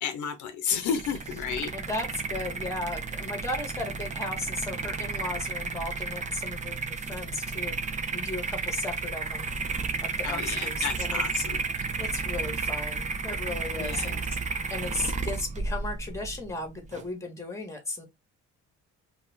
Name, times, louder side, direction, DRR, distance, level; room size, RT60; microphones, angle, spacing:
voice 1, 0.0-1.7 10.2-11.6 13.8-14.2, left 7 dB, 75° left, 0.6 m, -32 dB
sound 1, 0.7-17.1, right 4 dB, 25° right, 0.4 m, -32 dB
voice 2, 1.7-9.5 9.8-11.2 12.0-18.0, left 2 dB, 10° left, 0.9 m, -36 dB
2.3 x 2.3 x 3.1 m
cardioid pair, 90°, 30 cm